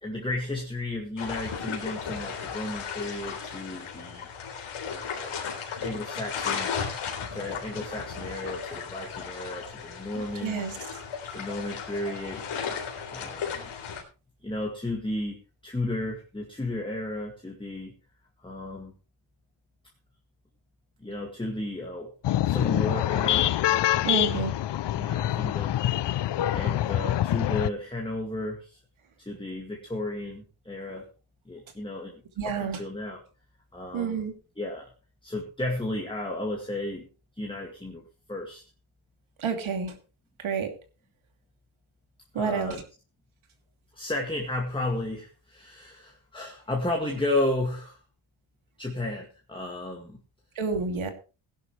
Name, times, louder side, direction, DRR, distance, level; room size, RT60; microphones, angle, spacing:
voice 1, 0.0-4.3 4.9-5.3 5.8-6.8 7.3-10.6 11.3-12.4 13.1-13.7 14.4-15.4 15.6-17.9 18.4-18.9 21.0-22.1 22.4-24.4 24.9-25.7 26.5-28.8 29.2-31.1 31.5-33.2 33.7-34.2 34.6-34.9 35.2-37.1 37.4-38.0 38.3-38.6 42.3-42.8 43.9-48.0 48.8-50.2, left 2 dB, 10° left, 0 dB, 2.2 m, -33 dB
sound 1, 1.2-14.0, left 6 dB, 80° left, 3.9 m, -35 dB
voice 2, 10.2-10.8 24.0-24.5 32.4-32.8 33.9-34.3 39.4-39.9 40.4-40.7 42.3-42.8 50.6-51.1, right 5 dB, 70° right, 5 dB, 2.9 m, -29 dB
sound 2, 22.2-27.7, left 13 dB, 55° left, 0.6 m, -25 dB
17.0 x 11.5 x 3.3 m, 0.33 s
cardioid pair, 110°, 49 cm